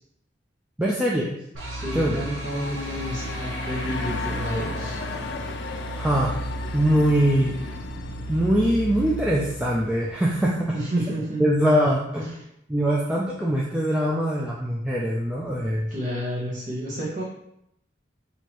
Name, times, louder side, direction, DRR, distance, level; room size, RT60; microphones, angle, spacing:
voice 1, 0.8-1.4 1.9-2.3 6.0-6.4 6.7-7.6 8.3-10.8 11.4-12.3 12.7-15.9, equal, 5° right, -4 dB, 0.4 m, -22 dB
sound 1, 1.5-10.6, right 1 dB, 80° right, 1.0 m, -34 dB
voice 2, 1.7-5.0 10.7-11.5 12.2-12.4 15.9-17.2, equal, 40° right, -6 dB, 1.0 m, -30 dB
sound 2, 2.0-10.7, left 4 dB, 65° left, 0.5 m, -37 dB
5.9 x 2.8 x 3.0 m, 0.77 s
head